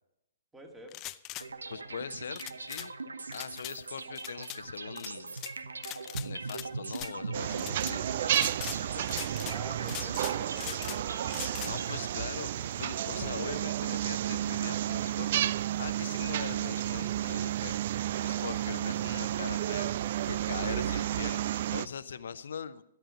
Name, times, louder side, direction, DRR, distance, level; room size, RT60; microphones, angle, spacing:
voice 1, 0.5-1.0 9.4-12.7, right 1 dB, 10° right, 3 dB, 2.1 m, -50 dB
sound 1, 0.9-1.5 2.4-2.9 3.3-3.7 4.2-4.6 5.0-5.5 5.8-6.7 6.9-7.1 7.6-7.9 8.3-8.8 9.1-9.6 9.9-11.0 11.3-11.7, left 16 dB, 30° left, 0.5 m, -41 dB
sound 2, 1.4-12.5, right 4 dB, 80° right, 0.8 m, -41 dB
voice 2, 1.7-5.4 6.2-9.5 11.6-22.8, left 7 dB, 65° left, 14 dB, 0.7 m, -42 dB
sound 3, 7.3-21.9, right 12 dB, 50° right, 0.4 m, -32 dB
12.5 x 11.5 x 5.1 m, 0.82 s
figure-of-eight pair, 120°, 0 cm